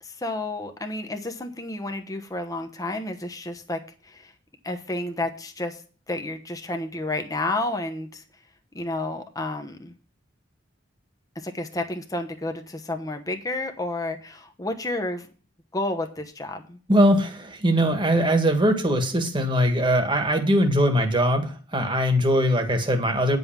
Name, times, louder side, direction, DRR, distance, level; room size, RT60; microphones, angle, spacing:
voice 1, 0.0-4.3 4.6-5.8 6.1-8.2 8.7-9.9 11.3-15.3 15.7-16.8, left 2 dB, 20° left, 5 dB, 1.0 m, -31 dB
voice 2, 16.9-23.4, equal, 25° right, 6 dB, 1.7 m, -21 dB
9.7 x 5.5 x 7.3 m, 0.39 s
head